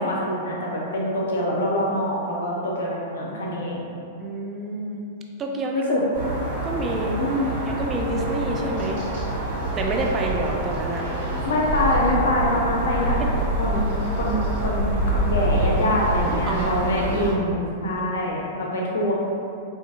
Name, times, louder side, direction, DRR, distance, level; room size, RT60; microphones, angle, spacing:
voice 1, 0.0-3.9 5.7-6.0 7.2-7.5 11.3-13.2 13.6-14.8 15.1-19.1, left 1 dB, 70° left, -3 dB, 0.6 m, -25 dB
voice 2, 4.2-5.1 5.4-6.0 6.6-7.2 7.7-9.0 9.8-11.1 13.7-13.8 16.3-16.9, right 2 dB, 25° right, 0 dB, 0.4 m, -28 dB
sound 1, 6.1-17.3, right 1 dB, 50° right, 1.4 m, -26 dB
4.6 x 2.7 x 2.4 m, 2.7 s
hypercardioid pair, 100°, 0 cm